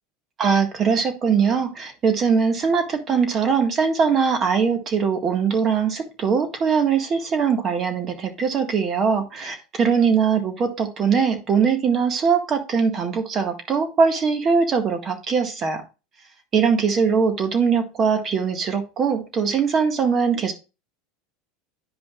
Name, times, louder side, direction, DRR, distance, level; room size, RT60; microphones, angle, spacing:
voice 1, 0.4-15.8 16.5-20.5, right 6 dB, 35° right, 6 dB, 1.7 m, -21 dB
10.5 x 5.1 x 2.4 m, 0.29 s
hypercardioid pair, 90°, 0 cm